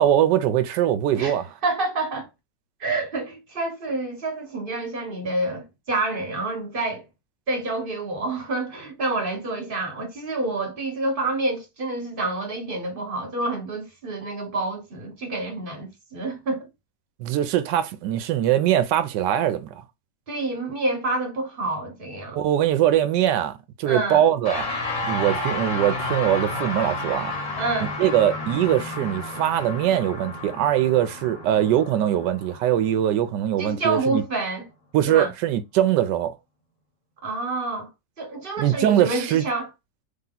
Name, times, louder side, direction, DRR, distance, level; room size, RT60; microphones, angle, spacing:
voice 1, 0.0-1.5 17.2-19.8 22.3-23.5 23.8-24.7 25.0-27.3 28.0-34.2 34.9-36.3 38.6-39.4, right 11 dB, 90° right, 1.2 m, -22 dB
voice 2, 1.2-2.3 2.8-7.0 7.5-16.7 20.3-22.4 23.8-24.2 27.6-27.9 33.6-34.7 35.1-35.3 37.2-37.9 38.2-39.7, right 2 dB, 35° right, 1.3 m, -28 dB
sound 1, 24.4-33.9, left 2 dB, 50° left, 1.7 m, -31 dB
3.4 x 2.9 x 3.8 m
omnidirectional pair, 1.8 m